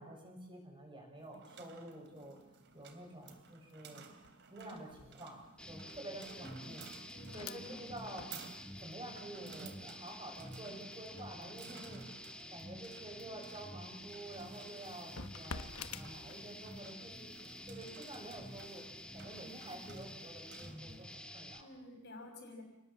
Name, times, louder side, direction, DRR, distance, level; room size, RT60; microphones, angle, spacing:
voice 1, 0.0-2.4 2.7-4.0 4.5-7.0 7.3-12.1 12.5-15.7 15.9-18.8 19.1-21.7, right 1 dB, 20° right, 1 dB, 7.1 m, -49 dB
sound 1, 1.2-21.0, right 5 dB, 50° right, 2.9 m, -57 dB
sound 2, 2.1-2.2 2.5-16.9 17.3-20.4, left 5 dB, 75° left, 1.2 m, -54 dB
sound 3, 5.6-21.6, left 1 dB, 5° left, 1.6 m, -50 dB
voice 2, 6.4-6.7 7.1-8.0 21.6-22.6, left 1 dB, 50° left, 4 dB, 5.9 m, -51 dB
29.5 x 19.5 x 7.7 m, 0.95 s
head